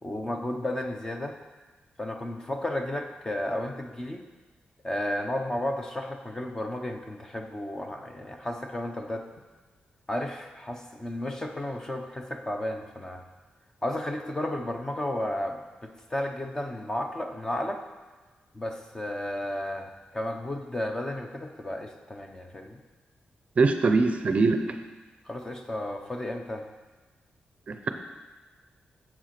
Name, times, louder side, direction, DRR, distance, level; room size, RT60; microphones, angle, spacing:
voice 1, 0.0-1.4 2.0-4.2 4.8-9.3 10.1-13.2 13.8-17.8 18.5-22.8 25.3-26.7, left 1 dB, 15° left, 4 dB, 0.7 m, -33 dB
voice 2, 23.6-24.8 27.7-27.9, right 3 dB, 40° right, 7 dB, 0.6 m, -23 dB
7.9 x 7.3 x 5.9 m, 1.3 s
wide cardioid pair, 160°, 3 cm